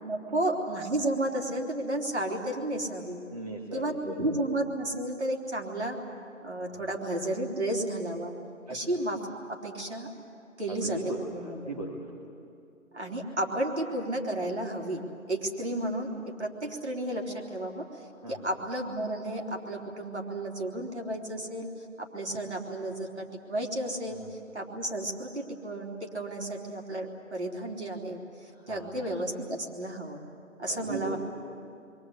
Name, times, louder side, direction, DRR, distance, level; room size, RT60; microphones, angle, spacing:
voice 1, 0.0-3.2 3.7-6.0 6.4-8.3 8.7-10.1 10.6-11.9 12.9-16.1 16.4-17.9 18.3-21.7 22.0-24.2 24.5-28.2 28.7-30.2 30.6-31.2, right 1 dB, 55° right, 0 dB, 3.8 m, -32 dB
voice 2, 3.3-4.3 6.7-6.9 8.7-8.8 10.7-12.1 18.2-18.4 24.1-24.3 28.5-29.1 30.7-31.2, right 2 dB, 30° right, -2 dB, 1.8 m, -39 dB
29.5 x 23.5 x 8.3 m, 2.7 s
figure-of-eight pair, 175°, 40 cm